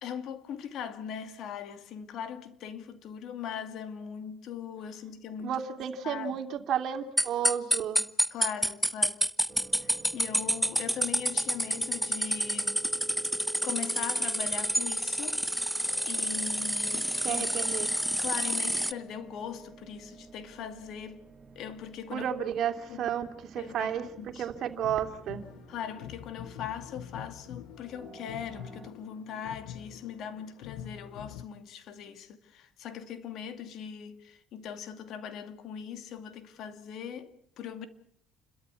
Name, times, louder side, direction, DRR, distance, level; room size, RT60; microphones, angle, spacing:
voice 1, 0.0-5.6 6.0-6.3 8.3-9.3 9.8-12.8 13.6-15.4 16.1-17.5 18.2-21.2 21.6-22.3 22.9-23.1 23.6-24.5 25.7-37.9, left 8 dB, 60° left, 2.4 m, -40 dB
voice 2, 5.4-8.0 17.2-17.9 22.1-24.0 24.4-25.5, right 9 dB, 60° right, 2.7 m, -32 dB
sound 1, 7.2-18.9, equal, ahead, 0.8 m, -29 dB
sound 2, 9.5-28.9, right 5 dB, 30° right, 1.7 m, -51 dB
sound 3, 24.7-31.5, left 11 dB, 85° left, 0.8 m, -46 dB
29.5 x 13.0 x 8.3 m
cardioid pair, 105°, 0 cm